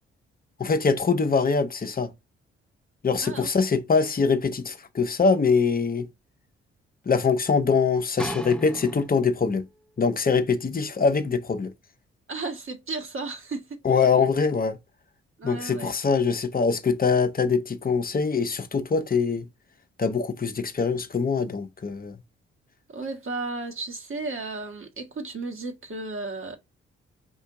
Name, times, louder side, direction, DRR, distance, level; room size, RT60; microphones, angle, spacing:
voice 1, 0.6-2.1 3.0-6.1 7.1-9.6 10.0-11.7 13.8-14.8 15.4-19.5 20.0-22.2, left 5 dB, 30° left, 0.9 m, -23 dB
sound 1, 8.2-9.5 10.2-10.3, equal, 5° left, 0.9 m, -35 dB
voice 2, 12.3-13.8 15.4-15.9 22.9-26.6, right 3 dB, 45° right, 1.6 m, -34 dB
4.6 x 2.8 x 3.6 m
hypercardioid pair, 40°, 29 cm